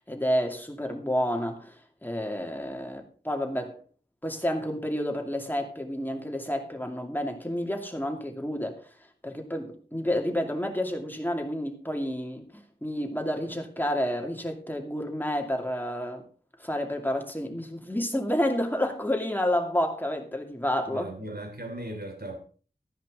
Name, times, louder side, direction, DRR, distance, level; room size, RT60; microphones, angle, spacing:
voice 1, 0.1-3.8 4.2-8.9 9.2-16.3 16.6-21.1, equal, 10° left, 2.5 m, -30 dB
voice 2, 20.9-22.4, right 1 dB, 65° right, 3.0 m, -37 dB
13.5 x 10.5 x 3.8 m
wide cardioid pair, 55°, 17 cm